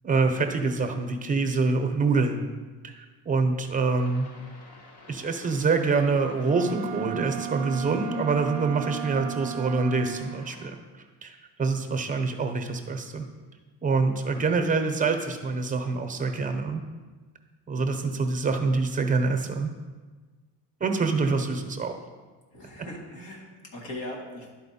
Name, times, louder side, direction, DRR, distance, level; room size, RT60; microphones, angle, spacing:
voice 1, 0.0-2.4 2.8-4.3 5.1-10.8 11.2-13.3 13.8-16.8 17.7-19.7 20.8-22.0, right 4 dB, 20° right, 5 dB, 0.7 m, -26 dB
sound 1, 4.0-10.7, left 2 dB, 60° left, 1.2 m, -50 dB
Wind instrument woodwind instrument, 6.4-10.5, right 12 dB, 60° right, 0.5 m, -35 dB
voice 2, 22.5-24.5, left 1 dB, 85° left, -1 dB, 2.0 m, -39 dB
11.5 x 4.4 x 4.2 m, 1.4 s
cardioid pair, 140°, 41 cm